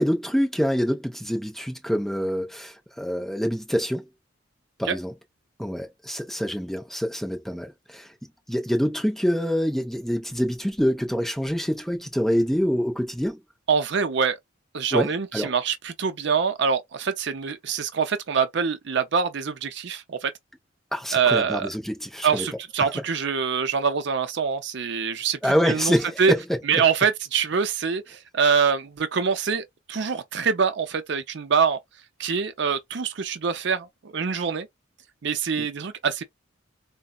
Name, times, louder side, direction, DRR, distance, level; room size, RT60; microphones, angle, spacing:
voice 1, 0.0-4.1 4.8-5.1 5.6-8.1 8.5-13.4 14.9-15.5 20.9-22.5 22.8-23.0 25.4-26.4 26.7-26.8 35.6-35.7, equal, ahead, 0.6 m, -26 dB
voice 2, 13.7-14.4 14.7-20.3 21.1-21.7 22.2-25.4 25.7-26.3 26.7-31.8 32.2-34.7 35.2-36.2, right 6 dB, 60° right, 0.5 m, -24 dB
3.9 x 2.1 x 2.3 m
head